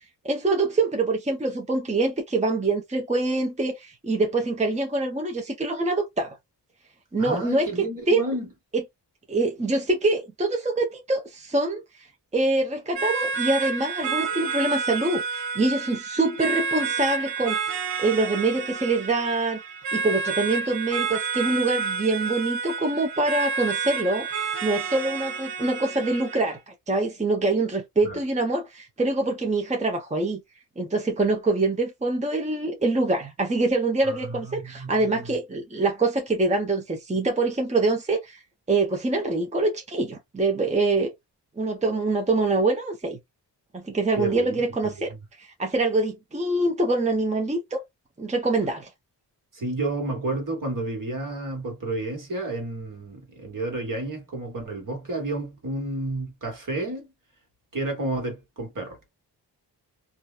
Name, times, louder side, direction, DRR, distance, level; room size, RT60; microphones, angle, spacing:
voice 1, 0.2-6.4 7.1-7.7 8.1-8.2 8.7-8.8 9.3-12.1 12.3-19.6 19.9-30.4 30.8-38.4 38.7-41.1 41.6-43.2 43.7-45.1 45.4-47.8 48.2-48.9, right 2 dB, 15° right, 0.8 m, -25 dB
voice 2, 7.2-8.5 28.0-28.2 34.0-35.3 44.2-44.5 49.5-57.1 57.7-59.1, right 2 dB, 50° right, 1.5 m, -31 dB
sound 1, 12.9-26.5, right 5 dB, 80° right, 1.2 m, -30 dB
2.6 x 2.3 x 2.3 m
cardioid pair, 45°, 42 cm